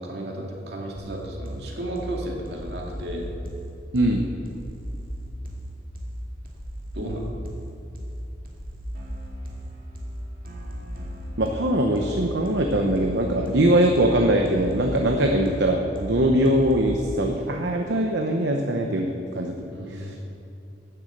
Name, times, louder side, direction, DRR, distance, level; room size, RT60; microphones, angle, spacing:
voice 1, 0.0-3.3 6.9-7.4 19.7-20.2, right 1 dB, 75° right, -1 dB, 2.2 m, -33 dB
sound 1, 0.9-16.9, equal, 55° right, 2.2 m, -36 dB
voice 2, 11.4-19.5 19.9-20.2, right 1 dB, 90° right, 2 dB, 0.9 m, -22 dB
12.0 x 6.9 x 8.0 m, 2.7 s
head